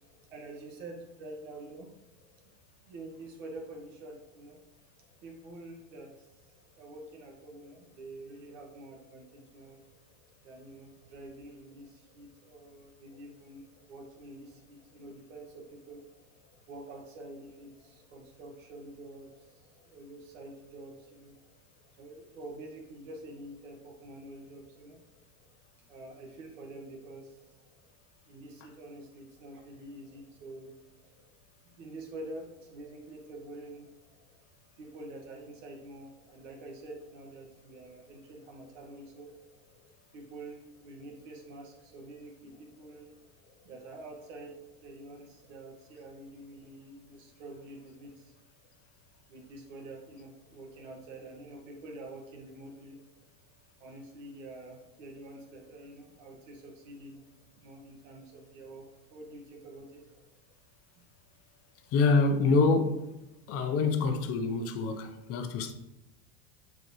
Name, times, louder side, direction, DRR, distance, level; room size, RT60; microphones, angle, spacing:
voice 1, 0.3-1.9 2.9-4.6 5.2-6.3 6.8-9.8 10.4-16.0 16.7-19.6 19.9-21.3 22.0-25.0 25.8-27.4 28.3-30.8 31.6-33.9 34.8-39.3 40.1-43.1 43.6-44.5 44.8-48.3 49.3-53.0 53.8-57.2 57.6-60.1 61.0-61.1, right 2 dB, 75° right, 1.9 m, -47 dB
voice 2, 61.9-63.1 63.5-65.7, left 3 dB, 40° left, 0.9 m, -26 dB
7.8 x 4.6 x 3.2 m
supercardioid pair, 130°, 38 cm